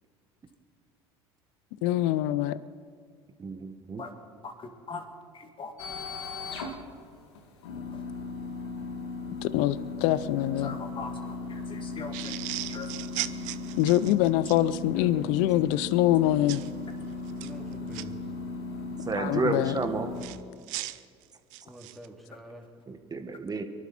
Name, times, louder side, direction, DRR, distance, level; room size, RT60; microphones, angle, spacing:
voice 1, 1.8-2.6 9.4-10.7 13.8-16.6 19.2-19.7, left 14 dB, 70° left, 17 dB, 0.5 m, -24 dB
voice 2, 3.4-4.0 19.0-20.1 21.6-21.7 22.9-23.6, right 3 dB, 30° right, 7 dB, 1.6 m, -31 dB
voice 3, 4.4-5.0 5.3-5.7 6.6-6.7 10.6-12.4 12.7-12.9, left 4 dB, 40° left, 4 dB, 2.5 m, -41 dB
sound 1, 5.8-20.3, left 3 dB, 85° left, 1.7 m, -37 dB
sound 2, 12.1-14.6 16.5-16.7 17.3-18.0 20.2-22.1, right 17 dB, 65° right, 0.6 m, -37 dB
voice 4, 14.9-15.3 17.4-18.3 21.6-22.7, right 1 dB, ahead, 1 dB, 3.0 m, -46 dB
23.5 x 11.5 x 4.3 m, 2.1 s
hypercardioid pair, 75°, 14 cm